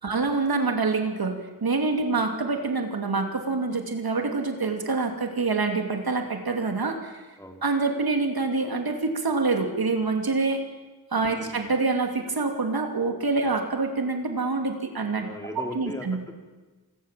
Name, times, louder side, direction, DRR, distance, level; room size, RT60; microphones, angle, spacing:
voice 1, 0.0-7.2 7.6-10.6 11.1-15.3 15.7-16.2, right 3 dB, 75° right, 5 dB, 2.7 m, -26 dB
voice 2, 11.3-11.7 15.2-16.3, equal, 10° left, 2 dB, 4.3 m, -39 dB
27.0 x 21.0 x 7.5 m, 1.3 s
wide cardioid pair, 75°, 37 cm